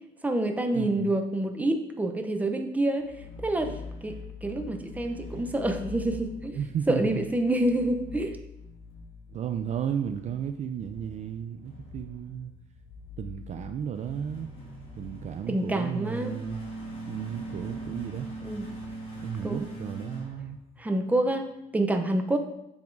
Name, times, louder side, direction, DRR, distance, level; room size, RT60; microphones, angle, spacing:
voice 1, 0.2-3.1 3.4-6.6 6.9-8.4 15.5-16.3 18.4-18.6 19.4-19.6 20.8-22.4, right 1 dB, 10° right, 5 dB, 0.7 m, -27 dB
voice 2, 0.7-1.2 6.5-7.3 9.3-12.5 13.2-14.5 15.0-16.6 17.1-18.3 19.2-20.6, right 8 dB, 45° right, 8 dB, 0.4 m, -34 dB
sound 1, 3.0-21.1, equal, 35° left, 2.0 m, -42 dB
7.3 x 3.5 x 4.6 m, 0.85 s
cardioid pair, 110°, 17 cm